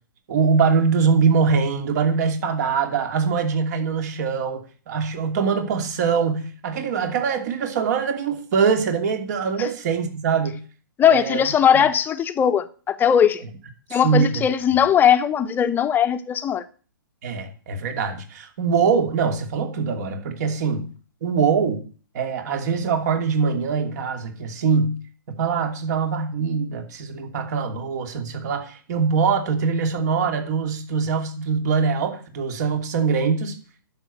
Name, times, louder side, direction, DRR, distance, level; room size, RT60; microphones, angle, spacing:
voice 1, 0.3-10.6 11.1-11.4 11.7-11.8 13.9-14.4 14.7-14.8 17.2-20.9 21.2-21.8 22.1-25.0 25.3-33.5, right 5 dB, 50° right, 2.8 m, -23 dB
voice 2, 11.0-13.4 13.9-16.6, left 8 dB, 15° left, 0.9 m, -19 dB
10.5 x 7.5 x 8.4 m
figure-of-eight pair, 120°, 12 cm